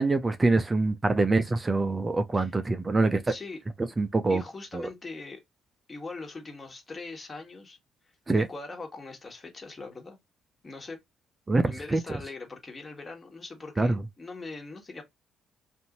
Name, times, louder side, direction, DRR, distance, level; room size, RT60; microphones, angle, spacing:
voice 1, 0.0-3.3 4.0-4.4 4.7-4.9 8.3-8.5 11.5-12.0 13.8-14.0, right 3 dB, 25° right, 0.5 m, -25 dB
voice 2, 3.3-3.6 4.3-5.4 5.9-7.8 8.3-10.2 10.6-11.0 11.7-15.0, left 3 dB, 35° left, 1.4 m, -41 dB
2.6 x 2.5 x 2.8 m
supercardioid pair, 60°, 0 cm